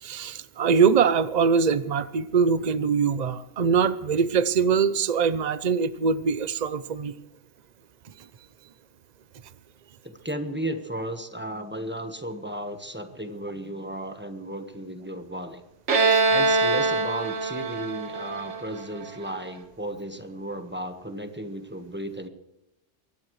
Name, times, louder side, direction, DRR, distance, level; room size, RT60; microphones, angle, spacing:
voice 1, 0.0-7.1, right 6 dB, 40° right, 14 dB, 0.8 m, -23 dB
voice 2, 10.0-15.6 16.3-22.3, right 1 dB, 10° right, 7 dB, 1.3 m, -34 dB
Bowed string instrument, 15.9-19.4, right 3 dB, 75° right, 1.9 m, -24 dB
23.0 x 17.0 x 3.2 m, 0.92 s
omnidirectional pair, 1.2 m